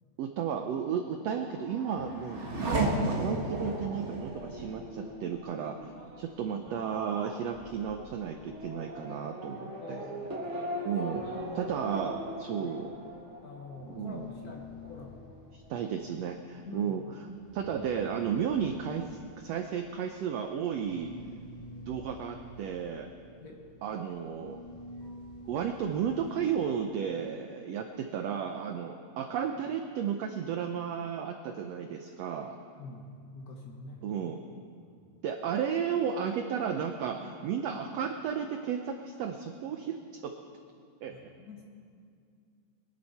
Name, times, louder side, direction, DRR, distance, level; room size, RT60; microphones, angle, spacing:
voice 1, 0.2-2.5 3.1-10.0 10.8-11.2 11.6-12.9 13.9-14.3 15.5-17.0 17.5-21.1 21.9-23.1 23.8-24.6 25.5-32.6 34.0-34.4 35.2-40.0 40.2-40.3 41.0-41.1, right 7 dB, 85° right, 5 dB, 1.4 m, -33 dB
Race car auto racing / Accelerating revving vroom, 1.2-14.5 14.8-15.5, right 1 dB, 50° right, 0.8 m, -37 dB
voice 2, 9.8-10.5 11.2-11.7 12.6-12.7 13.4-15.2 16.6-16.9 23.4-23.6 32.8-34.0 41.1-41.6, left 2 dB, 80° left, 0 dB, 0.8 m, -46 dB
sound 1, 11.1-13.5 13.7-26.8, left 1 dB, 45° left, 2.2 m, -49 dB
22.5 x 11.0 x 4.2 m, 2.3 s
omnidirectional pair, 3.8 m